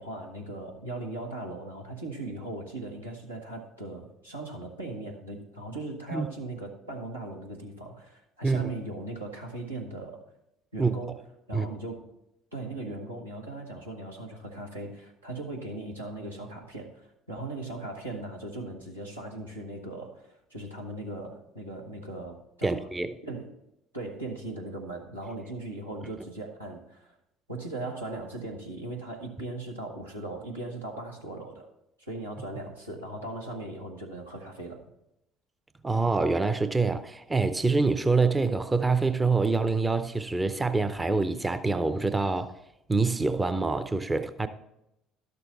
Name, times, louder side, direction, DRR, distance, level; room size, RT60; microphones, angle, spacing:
voice 1, 0.0-10.2 10.7-11.2 11.5-12.1 12.5-22.9 23.2-23.5 23.9-27.1 27.5-31.7 32.0-34.8, right 2 dB, 90° right, 1.3 m, -38 dB
voice 2, 22.6-23.2 35.8-42.5 42.9-44.5, right 3 dB, 15° right, 0.6 m, -26 dB
12.0 x 6.8 x 4.1 m
figure-of-eight pair, 55°, 0 cm